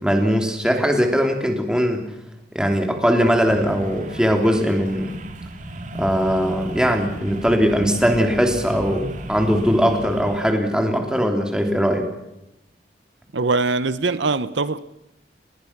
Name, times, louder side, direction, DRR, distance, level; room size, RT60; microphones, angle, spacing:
voice 1, 0.0-2.1 2.5-5.1 6.0-12.1, equal, 5° right, 3.3 m, -20 dB
sound 1, 3.2-10.5, right 1 dB, 45° right, 2.1 m, -34 dB
voice 2, 13.3-14.8, right 3 dB, 85° right, 0.9 m, -22 dB
29.5 x 20.5 x 6.0 m
head